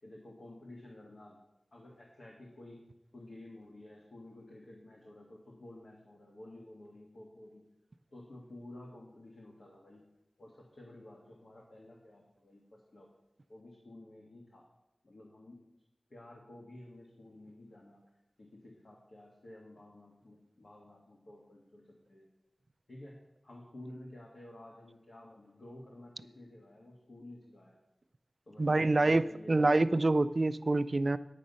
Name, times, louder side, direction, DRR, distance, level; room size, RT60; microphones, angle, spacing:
voice 1, 0.0-1.4 1.7-2.8 3.1-7.6 8.1-10.0 10.4-13.1 13.5-14.7 15.0-15.6 16.1-18.0 18.4-22.3 22.9-23.2 23.4-27.8 28.5-29.7, left 1 dB, 75° left, -2 dB, 1.6 m, -52 dB
voice 2, 28.6-31.2, right 2 dB, 50° right, 14 dB, 0.4 m, -26 dB
9.5 x 7.5 x 5.4 m, 0.95 s
wide cardioid pair, 75°, 0 cm